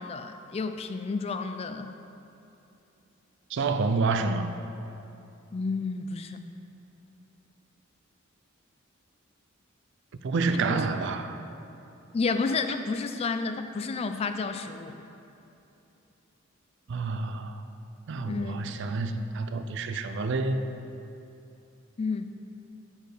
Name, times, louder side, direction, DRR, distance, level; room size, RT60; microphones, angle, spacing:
voice 1, 0.0-1.9 5.5-6.4 10.5-10.8 12.1-15.0 18.3-18.6 22.0-22.2, left 4 dB, 30° left, 0.3 m, -31 dB
voice 2, 3.5-4.5 10.2-11.4 16.9-17.6 18.1-20.6, right 3 dB, 60° right, 0.4 m, -28 dB
8.0 x 4.5 x 4.9 m
head